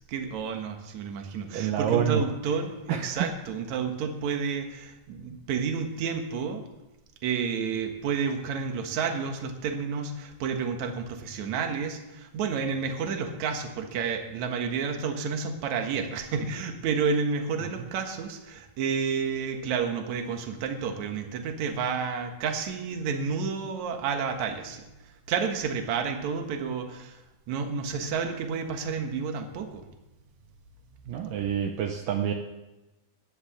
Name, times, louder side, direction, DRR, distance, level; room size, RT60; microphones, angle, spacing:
voice 1, 0.1-6.6 7.2-27.2 27.5-29.8, right 6 dB, 60° right, 5 dB, 2.5 m, -30 dB
voice 2, 1.5-2.2 2.9-3.3 17.8-17.9 31.1-32.3, right 9 dB, 75° right, 3 dB, 2.5 m, -27 dB
14.0 x 10.5 x 7.4 m, 1.0 s
omnidirectional pair, 4.2 m